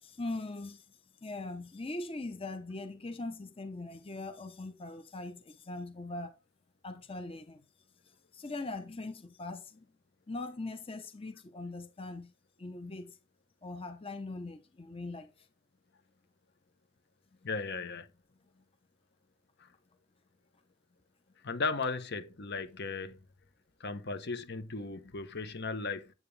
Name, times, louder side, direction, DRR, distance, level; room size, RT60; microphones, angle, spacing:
voice 1, 0.0-6.4 6.8-7.6 8.0-9.9 10.3-12.3 12.6-13.2 13.6-15.5 18.5-18.6, left 2 dB, 30° left, 0.9 m, -41 dB
voice 2, 17.4-18.1 21.4-23.2 23.8-26.1, left 4 dB, 55° left, 1.1 m, -36 dB
9.3 x 8.2 x 3.3 m
head